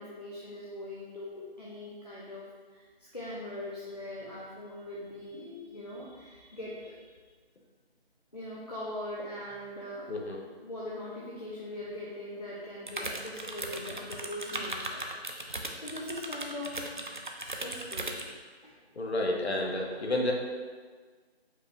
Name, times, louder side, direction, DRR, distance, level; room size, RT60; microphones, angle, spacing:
voice 1, 0.0-7.2 8.3-10.2 10.6-15.1 15.7-16.9 17.4-18.2 18.6-18.8, left 1 dB, 40° left, -5 dB, 0.5 m, -41 dB
voice 2, 10.1-10.4 19.0-20.3, left 1 dB, 90° left, 0 dB, 1.0 m, -30 dB
sound 1, 12.9-18.3, right 2 dB, 50° right, 0.4 m, -37 dB
5.1 x 2.3 x 4.0 m, 1.5 s
figure-of-eight pair, 180°, 32 cm